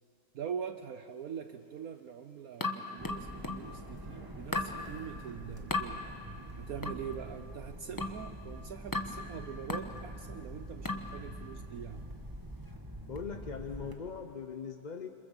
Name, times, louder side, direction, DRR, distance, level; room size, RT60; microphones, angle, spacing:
voice 1, 0.3-6.1 6.6-12.1, right 8 dB, 65° right, 9 dB, 1.2 m, -43 dB
sound 1, 2.6-3.7 4.5-4.8 5.7-5.9 6.8-7.1 8.0-8.3 8.9-9.2 9.7-10.0 10.8-11.1, left 2 dB, 15° left, 1.0 m, -35 dB
sound 2, 3.0-13.9, right 1 dB, 15° right, 1.7 m, -46 dB
voice 2, 13.1-15.1, left 6 dB, 40° left, 6 dB, 0.7 m, -40 dB
27.0 x 26.5 x 7.3 m, 2.7 s
omnidirectional pair, 1.7 m